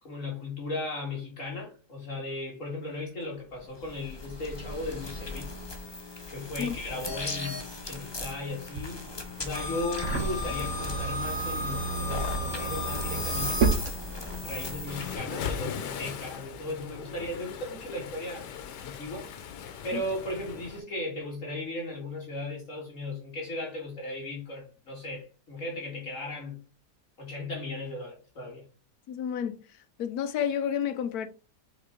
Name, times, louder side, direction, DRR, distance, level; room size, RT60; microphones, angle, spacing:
voice 1, 0.0-5.5 6.3-9.0 9.4-13.9 14.4-18.5 18.8-19.3 19.8-26.6 27.2-28.6, left 2 dB, 50° left, 2.1 m, -36 dB
sound 1, 3.5-15.2, left 3 dB, 25° left, 0.6 m, -36 dB
sound 2, 8.5-14.8, right 5 dB, 55° right, 1.0 m, -32 dB
Waves surf, 14.9-20.8, left 7 dB, 85° left, 1.5 m, -39 dB
voice 2, 29.1-29.6 30.0-31.3, left 8 dB, 70° left, 1.2 m, -30 dB
6.1 x 4.3 x 3.7 m
omnidirectional pair, 1.8 m